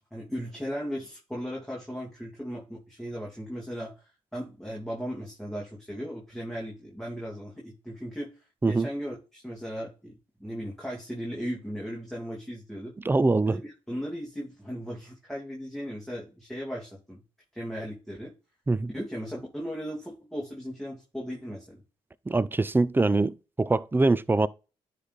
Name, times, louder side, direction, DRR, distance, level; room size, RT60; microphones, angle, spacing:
voice 1, 0.1-8.3 8.7-12.9 13.5-17.2 17.5-18.3 18.9-21.8, equal, 5° left, 2.4 m, -37 dB
voice 2, 13.0-13.6 18.7-18.9 22.3-24.5, right 3 dB, 15° right, 0.4 m, -23 dB
9.8 x 3.3 x 4.0 m
supercardioid pair, 55°, 13 cm